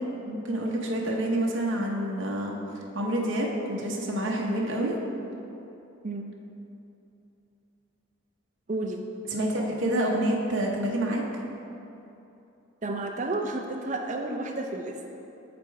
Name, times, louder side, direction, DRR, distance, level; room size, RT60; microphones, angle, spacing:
voice 1, 0.3-2.6 2.9-4.9 9.3-11.2, right 1 dB, 65° right, -2 dB, 0.8 m, -27 dB
voice 2, 8.7-9.0 12.8-14.9, right 2 dB, 35° right, 2 dB, 0.5 m, -31 dB
6.9 x 5.1 x 4.6 m, 2.8 s
head